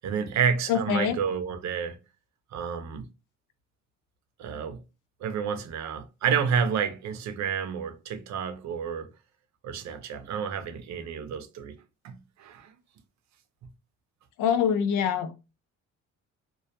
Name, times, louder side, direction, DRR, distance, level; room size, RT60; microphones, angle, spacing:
voice 1, 0.0-2.0 2.5-3.1 4.4-4.8 5.2-9.1 9.6-11.7 12.0-12.7, right 7 dB, 65° right, 0.5 m, -30 dB
voice 2, 0.7-1.2 14.4-15.3, left 8 dB, 85° left, 0.5 m, -24 dB
2.2 x 2.1 x 2.7 m
cardioid pair, 90°, 30 cm